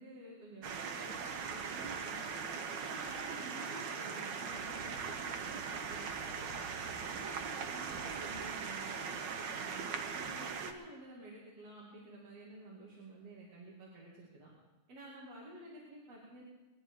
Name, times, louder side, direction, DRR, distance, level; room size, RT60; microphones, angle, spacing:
voice 1, 0.0-2.4 2.8-6.6 7.1-9.2 9.6-14.5 14.9-16.4, right 1 dB, 60° right, -6 dB, 3.5 m, -51 dB
sound 1, 0.6-10.7, right 6 dB, 80° right, 1.0 m, -40 dB
22.0 x 10.5 x 4.8 m, 1.2 s
omnidirectional pair, 3.3 m